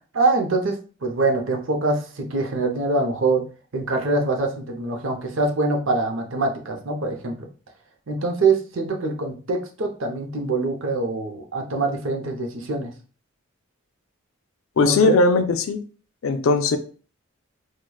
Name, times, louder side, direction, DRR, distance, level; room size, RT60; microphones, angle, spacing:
voice 1, 0.1-3.4 3.7-7.5 8.1-12.9 14.8-15.2, right 3 dB, 60° right, 3 dB, 0.6 m, -24 dB
voice 2, 14.8-15.8 16.2-16.8, left 3 dB, 65° left, 8 dB, 0.4 m, -19 dB
4.7 x 2.2 x 2.3 m, 0.38 s
head